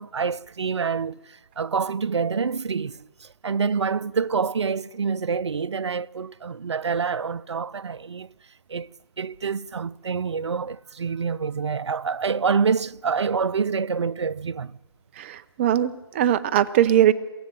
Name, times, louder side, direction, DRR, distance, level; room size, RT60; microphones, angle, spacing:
voice 1, 0.0-8.3 8.7-8.9 9.2-14.7, right 5 dB, 85° right, 0.5 m, -27 dB
voice 2, 15.2-17.1, right 11 dB, 25° right, 0.7 m, -20 dB
22.5 x 15.5 x 7.7 m
hypercardioid pair, 150°, 14 cm